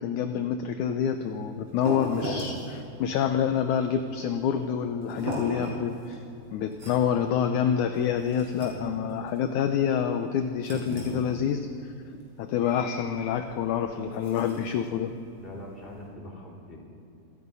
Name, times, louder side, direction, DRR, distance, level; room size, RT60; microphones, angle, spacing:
voice 1, 0.0-6.2 6.5-15.2, left 8 dB, 70° left, 7 dB, 2.0 m, -27 dB
sound 1, 1.1-16.1, equal, 40° right, 6.4 m, -39 dB
voice 2, 15.4-16.8, left 1 dB, 15° left, -3 dB, 3.9 m, -43 dB
27.0 x 17.5 x 5.5 m, 2.7 s
omnidirectional pair, 4.1 m